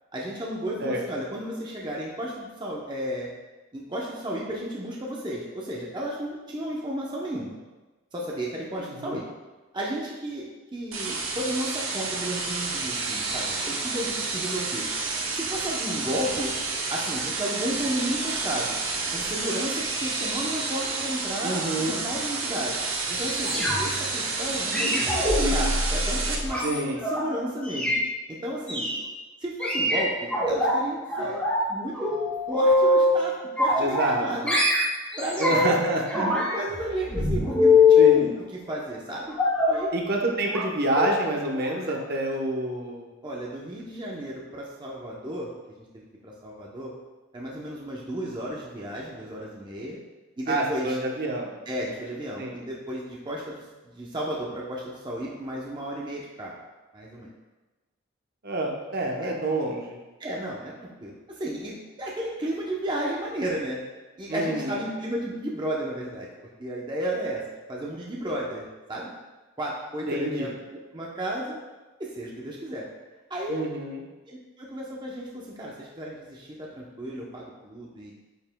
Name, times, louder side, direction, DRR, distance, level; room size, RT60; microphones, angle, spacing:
voice 1, 0.1-3.3 3.7-7.5 8.1-9.2 9.7-10.5 10.7-14.9 15.3-16.5 16.9-18.7 19.1-22.8 23.1-27.9 28.3-28.9 29.4-31.4 31.7-34.6 35.2-35.8 36.1-38.3 38.7-39.3 39.7-39.9 43.2-45.5 45.9-46.9 47.3-50.0 50.4-51.0 51.7-56.5 56.9-57.3 59.2-59.3 60.2-63.8 64.2-66.3 66.6-67.4 67.7-68.6 68.9-69.1 69.6-71.6 72.0-72.9 73.3-73.6 74.3-78.1, right 1 dB, 20° right, -3 dB, 0.7 m, -33 dB
voice 2, 8.9-9.2 21.4-22.1 26.6-27.0 33.8-34.2 35.4-36.3 38.0-38.3 39.9-43.1 50.5-51.5 52.4-52.5 58.4-60.0 64.3-64.8 70.1-70.5 73.5-74.0, right 1 dB, 50° right, 0 dB, 0.9 m, -28 dB
sound 1, 10.9-26.4, right 3 dB, 85° right, 1.0 m, -30 dB
sound 2, 23.4-24.0 24.7-27.2 27.6-28.0 28.7-29.0 29.6-30.7 31.1-31.7 32.0-33.2 33.6-34.2 34.5-35.8 36.1-38.2 39.3-39.8 40.5-40.7 40.9-41.1 41.5-41.7 42.0-42.1, left 3 dB, 5° left, 2.2 m, -23 dB
9.1 x 5.6 x 2.2 m, 1.2 s
head